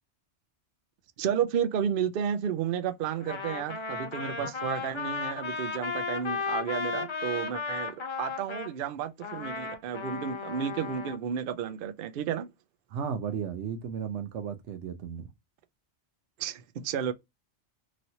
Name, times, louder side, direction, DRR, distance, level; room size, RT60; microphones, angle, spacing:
voice 1, 1.2-12.5 16.4-17.1, right 8 dB, 60° right, 0.6 m, -32 dB
Trumpet, 3.2-8.7 9.2-11.2, left 5 dB, 40° left, 0.4 m, -35 dB
voice 2, 12.9-15.3, right 7 dB, 90° right, 1.0 m, -34 dB
3.0 x 2.7 x 2.7 m
omnidirectional pair, 1.2 m